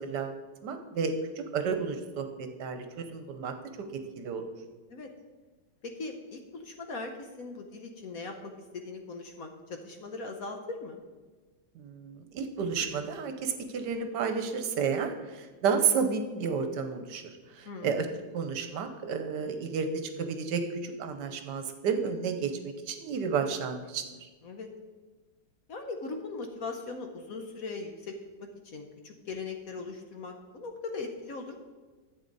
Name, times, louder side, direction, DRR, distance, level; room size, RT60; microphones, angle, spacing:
voice 1, 0.0-3.5 3.9-4.4 11.8-17.2 17.5-18.1 18.3-19.9 20.2-24.0, right 6 dB, 70° right, 7 dB, 1.4 m, -31 dB
voice 2, 5.8-11.0 17.6-18.0 24.4-24.7 25.7-31.6, left 3 dB, 60° left, 4 dB, 1.2 m, -40 dB
11.5 x 7.9 x 4.0 m, 1.3 s
omnidirectional pair, 2.0 m